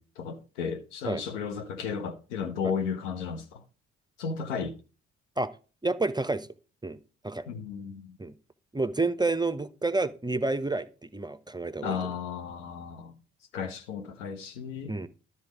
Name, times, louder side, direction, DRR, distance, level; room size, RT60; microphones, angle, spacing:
voice 1, 0.0-3.6 4.2-4.8 7.5-8.2 11.8-13.2 13.5-14.9, left 6 dB, 80° left, 0.9 m, -34 dB
voice 2, 5.8-6.5 6.8-7.0 7.2-7.5 8.2-8.4 8.7-12.0 14.9-15.1, right 3 dB, 10° right, 0.6 m, -29 dB
12.0 x 4.3 x 5.0 m
figure-of-eight pair, 40°, 36 cm